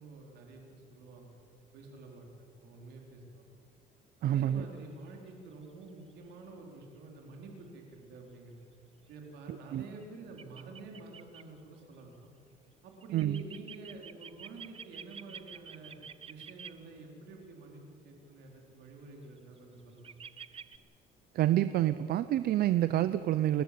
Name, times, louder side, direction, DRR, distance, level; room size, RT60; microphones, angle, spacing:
voice 1, 0.0-1.3 1.7-3.4 4.2-8.6 9.1-12.3 12.8-15.9 16.3-20.1, right 3 dB, 80° right, 1 dB, 4.3 m, -49 dB
voice 2, 4.2-4.6 9.7-9.8 13.1-13.4 21.3-23.6, right 12 dB, 65° right, 13 dB, 0.7 m, -28 dB
sound 1, 10.0-10.1 10.4-11.4 13.0-16.7 19.4-19.6 20.0-20.8, right 7 dB, 35° right, 0.8 m, -47 dB
29.0 x 11.5 x 8.6 m, 2.3 s
cardioid pair, 110°, 17 cm